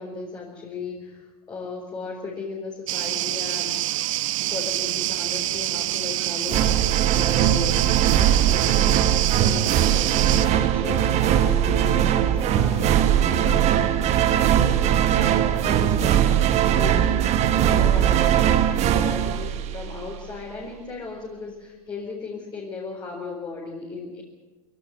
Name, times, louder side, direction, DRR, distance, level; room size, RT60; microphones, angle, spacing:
voice 1, 0.0-3.8 4.4-16.2 16.6-24.2, left 4 dB, 20° left, -2 dB, 4.5 m, -36 dB
sound 1, 2.9-10.5, right 15 dB, 60° right, 1.0 m, -26 dB
sound 2, 6.5-20.1, right 10 dB, 35° right, 1.6 m, -20 dB
22.5 x 16.5 x 9.3 m, 1.2 s
hypercardioid pair, 100°, 19 cm